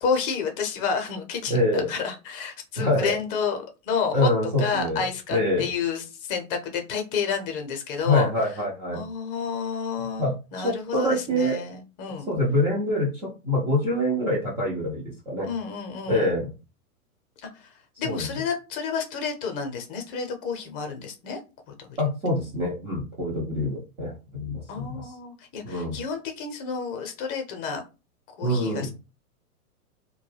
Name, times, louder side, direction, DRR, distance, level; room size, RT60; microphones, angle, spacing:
voice 1, 0.0-4.3 4.6-8.3 8.9-10.3 10.5-12.3 15.4-16.3 17.4-17.7 18.0-21.4 21.9-22.0 24.7-27.8 28.4-28.9, left 6 dB, 40° left, 4 dB, 0.7 m, -30 dB
voice 2, 1.5-1.9 2.8-3.1 4.1-5.7 8.0-9.0 10.2-11.6 12.3-15.5 16.1-16.5 18.0-18.3 22.0-25.1 25.6-26.0 28.4-28.9, left 1 dB, 10° right, -6 dB, 0.4 m, -25 dB
2.2 x 2.1 x 3.2 m, 0.30 s
hypercardioid pair, 115°, 44 cm